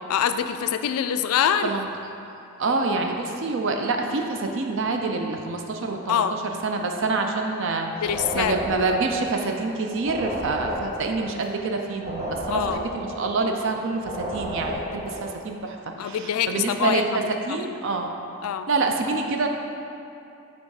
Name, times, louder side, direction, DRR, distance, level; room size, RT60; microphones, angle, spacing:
voice 1, 0.1-1.7 6.1-6.4 8.0-8.8 12.5-12.9 16.0-17.6 18.4-18.7, left 8 dB, 80° left, 10 dB, 0.3 m, -25 dB
voice 2, 1.6-2.1 2.6-7.9 8.3-18.1 18.7-19.5, right 3 dB, 55° right, 3 dB, 0.4 m, -27 dB
sound 1, 8.0-9.7 10.0-13.7 14.0-15.3, right 1 dB, 30° right, 0.7 m, -32 dB
7.6 x 3.5 x 4.7 m, 2.7 s
head